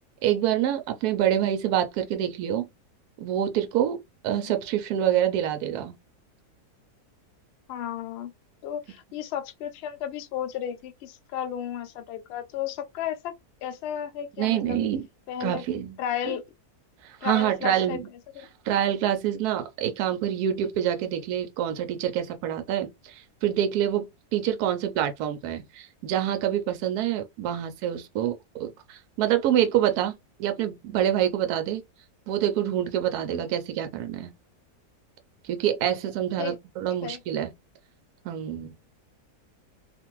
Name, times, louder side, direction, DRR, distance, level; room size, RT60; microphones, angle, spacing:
voice 1, 0.2-2.7 3.2-4.0 4.2-5.9 14.4-15.0 15.4-16.0 16.3-16.4 17.0-18.0 18.6-30.1 30.4-31.8 32.3-34.3 35.4-37.5 38.2-38.7, right 10 dB, 80° right, 1.1 m, -26 dB
voice 2, 7.7-8.3 8.6-13.3 13.6-14.9 15.3-15.6 16.0-16.4 17.2-18.0 18.4-18.5 33.3-33.5 36.4-36.6 37.0-37.2, left 9 dB, 85° left, 0.5 m, -33 dB
2.5 x 2.5 x 3.0 m
omnidirectional pair, 1.7 m